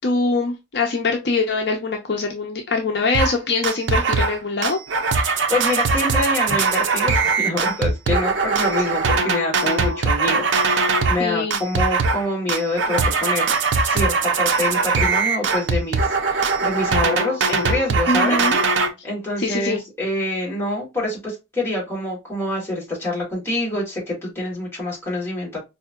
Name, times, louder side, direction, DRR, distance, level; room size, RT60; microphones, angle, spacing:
voice 1, 0.0-4.8 11.2-11.6 18.1-18.6 19.4-19.8, left 3 dB, 60° left, 2 dB, 0.6 m, -23 dB
sound 1, 3.1-3.4 3.6-4.4 4.6-11.2 11.5-12.2 12.5-18.9, right 4 dB, 75° right, 0.6 m, -21 dB
voice 2, 5.5-13.5 13.8-18.4 19.0-25.6, left 1 dB, 15° left, -6 dB, 2.0 m, -26 dB
4.6 x 2.7 x 2.2 m, 0.23 s
head